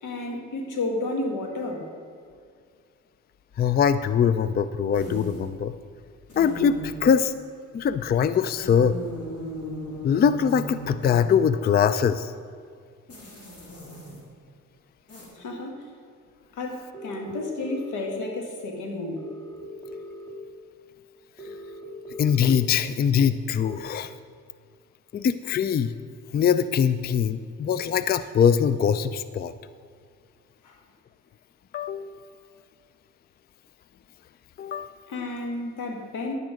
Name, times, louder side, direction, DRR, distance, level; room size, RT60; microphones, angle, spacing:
voice 1, 0.0-1.9 15.3-15.9 16.5-19.3 30.6-30.8 35.1-36.4, left 2 dB, 85° left, 2 dB, 2.0 m, -32 dB
voice 2, 3.6-5.7 6.4-7.3 7.7-9.0 10.0-12.3 22.2-24.1 25.1-25.9 26.3-29.5 31.7-32.1 34.6-34.9, left 7 dB, 35° left, 13 dB, 0.4 m, -22 dB
sound 1, 4.9-5.5 6.3-7.2 8.6-11.5 13.1-14.2 15.1-15.2, right 1 dB, 55° left, 3.3 m, -37 dB
sound 2, 16.9-18.1 19.2-20.3 21.4-22.5 23.6-23.8, equal, 15° left, 2.6 m, -40 dB
11.0 x 9.1 x 5.1 m, 2.1 s
cardioid pair, 90°, 30 cm